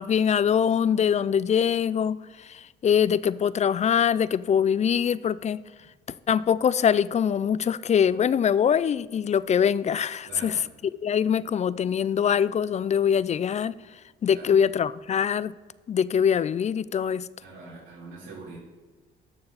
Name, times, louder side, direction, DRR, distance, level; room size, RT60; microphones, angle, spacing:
voice 1, 0.0-5.6 6.1-10.6 11.0-13.7 14.2-15.5 15.9-17.3, left 8 dB, 35° left, 19 dB, 0.3 m, -23 dB
voice 2, 10.2-10.6 14.3-14.6 17.4-18.6, right 3 dB, 75° right, -8 dB, 3.2 m, -43 dB
12.0 x 6.7 x 4.0 m, 1.3 s
cardioid pair, 90°, 20 cm